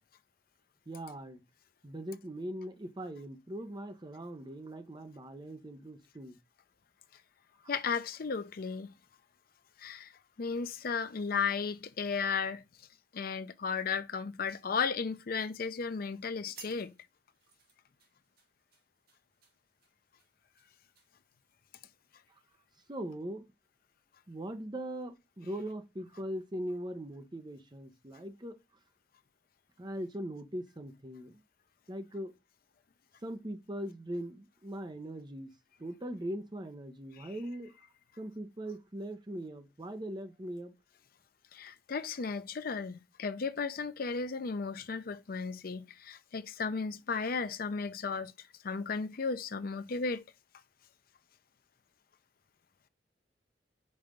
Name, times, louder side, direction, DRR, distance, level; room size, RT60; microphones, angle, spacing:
voice 1, 0.9-1.4 1.8-6.4 22.9-23.5 24.3-28.6 29.8-31.4 31.9-32.3 33.2-35.5 35.8-37.7 38.2-40.7, right 1 dB, 25° right, 0.8 m, -40 dB
voice 2, 7.7-8.9 9.8-10.1 10.4-12.6 13.1-16.9 37.2-37.3 41.5-48.3 48.6-50.2, left 5 dB, 50° left, 0.5 m, -35 dB
sound 1, 13.8-15.0 15.4-15.7 16.2-16.3 16.5-21.9 22.4-22.6, right 4 dB, 55° right, 2.1 m, -58 dB
5.4 x 4.4 x 5.1 m
head